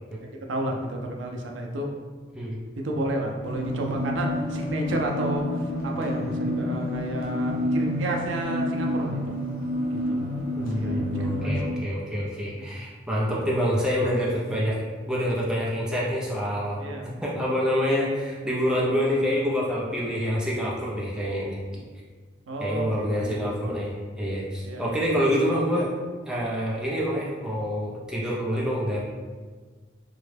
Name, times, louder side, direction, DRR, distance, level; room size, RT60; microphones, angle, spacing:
voice 1, 0.2-1.9 2.8-9.4 9.9-10.3 10.6-11.5 12.4-12.8 16.8-17.3 20.0-20.2 22.5-23.8 24.6-24.9 25.3-25.4, right 1 dB, 85° right, 1 dB, 0.5 m, -32 dB
sound 1, 3.4-11.7, left 1 dB, 50° left, 0.8 m, -29 dB
voice 2, 10.6-14.8 15.1-16.8 17.2-21.6 22.6-25.9 26.2-29.0, equal, 5° right, -6 dB, 0.5 m, -26 dB
3.6 x 2.2 x 3.3 m, 1.4 s
head